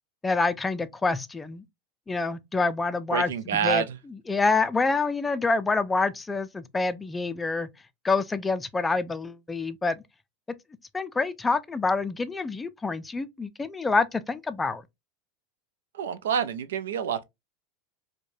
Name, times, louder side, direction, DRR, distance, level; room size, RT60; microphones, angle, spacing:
voice 1, 0.2-1.6 2.1-3.8 4.3-7.7 8.0-10.0 10.9-14.8, left 3 dB, 15° left, 0.4 m, -27 dB
voice 2, 3.1-4.0 16.0-17.2, right 8 dB, 90° right, 0.5 m, -27 dB
4.6 x 2.2 x 2.6 m
supercardioid pair, 120°, 0 cm